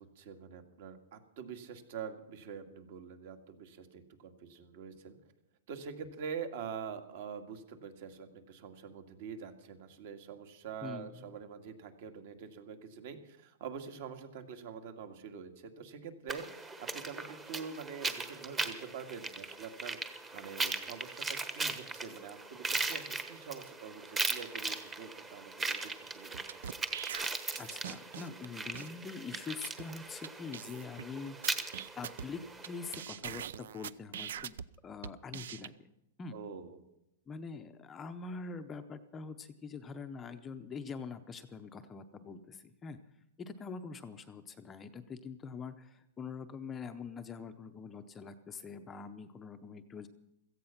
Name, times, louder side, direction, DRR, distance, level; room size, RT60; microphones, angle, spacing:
voice 1, 0.0-5.2 5.7-26.6 36.3-36.8, right 6 dB, 50° right, 7 dB, 2.0 m, -45 dB
sound 1, 16.3-33.0, right 3 dB, 10° right, 1.1 m, -39 dB
sound 2, 26.3-28.4 28.7-28.9 29.3-29.4 29.6-29.8 30.2-30.3 30.5-31.0 31.4-32.7 32.9-34.6 35.0-35.7, right 9 dB, 70° right, 0.6 m, -42 dB
voice 2, 27.6-31.4 32.0-34.6 34.8-35.9 36.2-36.4 37.3-43.0 43.4-50.1, left 5 dB, 15° left, 8 dB, 0.6 m, -44 dB
16.5 x 15.0 x 5.8 m, 0.84 s
supercardioid pair, 165°, 0 cm